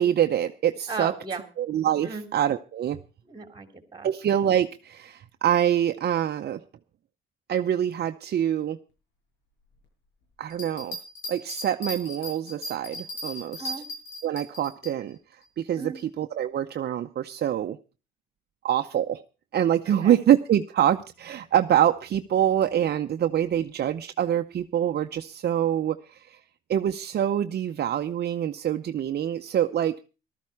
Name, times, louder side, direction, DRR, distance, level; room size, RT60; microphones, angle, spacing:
voice 1, 0.0-1.1 1.6-3.0 4.0-6.6 7.5-8.8 10.4-11.0 11.3-13.7 14.2-17.8 18.6-19.2 19.5-26.4 26.7-29.9, right 10 dB, 55° right, 7 dB, 0.7 m, -25 dB
voice 2, 0.9-1.4 2.0-2.3 3.3-4.1 13.6-13.9 15.7-16.0 19.9-20.2, right 4 dB, 20° right, 7 dB, 3.0 m, -35 dB
sound 1, 10.5-14.9, left 1 dB, 80° left, 7.6 m, -37 dB
14.5 x 13.0 x 4.7 m, 0.33 s
cardioid pair, 90°, 20 cm